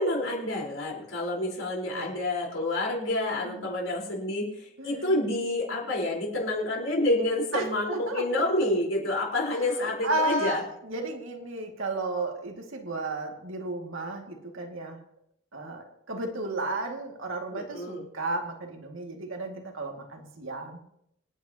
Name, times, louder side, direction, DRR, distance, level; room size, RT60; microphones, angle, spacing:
voice 1, 0.0-4.5 4.8-10.6 17.5-18.1, left 1 dB, 75° left, -3 dB, 4.4 m, -28 dB
voice 2, 4.8-5.1 7.5-8.4 9.5-15.0 15.5-20.8, right 2 dB, 80° right, 2 dB, 2.3 m, -33 dB
27.0 x 9.4 x 2.9 m, 0.74 s
head